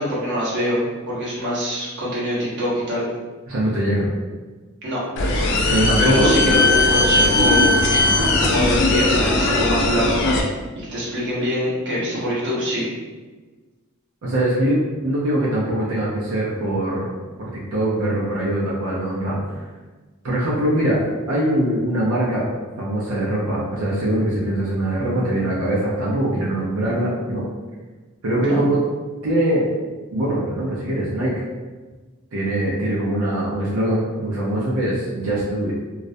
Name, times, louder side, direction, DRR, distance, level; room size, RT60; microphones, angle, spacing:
voice 1, 0.0-3.1 4.8-5.0 6.0-7.7 8.4-12.9 28.4-28.6, equal, 55° right, -7 dB, 0.9 m, -24 dB
voice 2, 3.5-4.1 5.5-6.3 14.2-17.1 17.5-19.4 20.2-21.0 21.3-22.4 22.8-27.5 28.2-28.8 29.2-29.7 30.1-31.3 32.3-35.7, right 1 dB, 90° right, -6 dB, 0.6 m, -22 dB
sound 1, 5.2-10.4, left 2 dB, 55° left, 0.3 m, -18 dB
2.4 x 2.1 x 2.5 m, 1.3 s
head